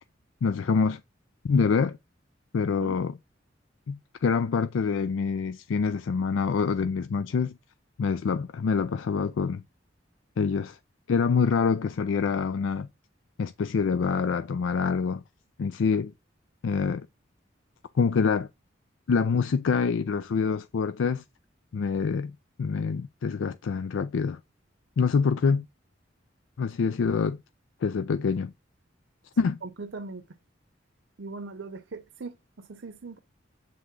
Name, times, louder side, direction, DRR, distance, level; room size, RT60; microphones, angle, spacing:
voice 1, 0.4-1.0 1.4-2.0 2.5-3.2 3.9-7.6 8.0-9.6 10.4-10.8 11.1-12.9 13.4-15.2 15.6-16.1 16.6-17.1 17.9-18.5 19.1-21.2 21.7-22.3 22.6-24.4 25.0-25.7 26.6-27.4 27.8-28.5 29.4-29.6, left 5 dB, 85° left, 0.4 m, -26 dB
voice 2, 29.6-30.2 31.2-33.2, right 3 dB, 70° right, 0.7 m, -40 dB
7.7 x 3.5 x 3.6 m
head